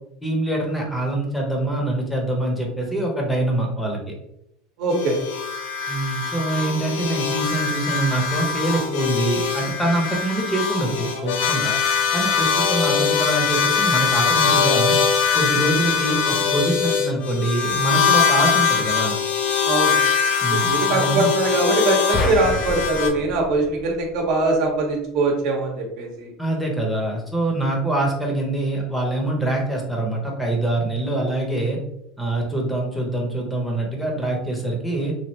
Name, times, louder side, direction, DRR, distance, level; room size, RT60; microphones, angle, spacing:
voice 1, 0.2-4.0 5.9-11.7 12.1-15.0 15.3-19.2 20.4-21.3 26.4-31.8 32.2-35.2, right 2 dB, 5° left, -1 dB, 0.8 m, -24 dB
voice 2, 4.8-5.2 19.6-20.0 20.5-26.3, right 2 dB, 65° right, 1 dB, 0.9 m, -22 dB
sound 1, 4.9-23.1, left 6 dB, 80° left, 0.6 m, -22 dB
sound 2, 22.1-24.5, left 3 dB, 30° left, 0.3 m, -29 dB
3.1 x 2.5 x 2.8 m, 0.80 s
supercardioid pair, 125°, 0 cm